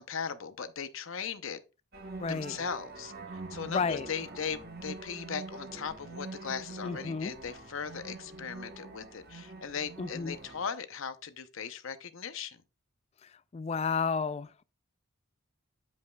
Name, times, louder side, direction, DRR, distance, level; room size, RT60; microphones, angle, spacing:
voice 1, 0.0-1.6 2.3-3.1 3.5-12.6, left 6 dB, 65° left, 0.7 m, -38 dB
sound 1, 1.9-10.7, right 3 dB, 45° right, 1.0 m, -45 dB
voice 2, 2.2-2.6 3.7-4.1 6.8-7.4 10.0-10.4 13.2-14.6, left 5 dB, 30° left, 0.3 m, -32 dB
12.5 x 5.4 x 2.3 m
head